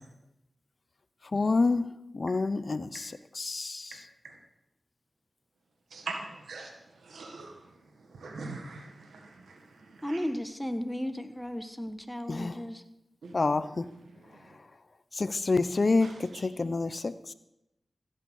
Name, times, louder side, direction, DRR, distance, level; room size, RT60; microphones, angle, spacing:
voice 1, 1.3-1.9 2.1-4.0 12.3-12.6 13.3-13.8 15.1-17.3, left 3 dB, 50° left, 13 dB, 0.8 m, -28 dB
voice 2, 5.9-6.7 7.0-7.6 8.1-9.6 10.0-10.3 13.2-13.4 16.0-16.1, right 3 dB, 85° right, 3 dB, 1.6 m, -41 dB
voice 3, 10.0-12.8, equal, 5° left, 9 dB, 1.3 m, -34 dB
15.0 x 8.1 x 6.5 m, 0.89 s
cardioid pair, 45°, 0 cm